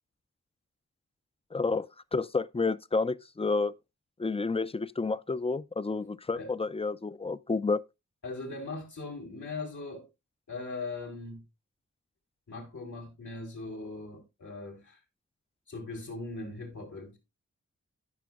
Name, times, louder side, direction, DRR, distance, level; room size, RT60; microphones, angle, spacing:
voice 1, 1.5-3.7 4.2-7.8, left 3 dB, 20° left, 0.4 m, -30 dB
voice 2, 8.2-10.1 10.5-11.4 12.5-15.0 15.7-17.2, left 3 dB, 90° left, 3.7 m, -40 dB
15.0 x 6.0 x 2.4 m
wide cardioid pair, 100°, 29 cm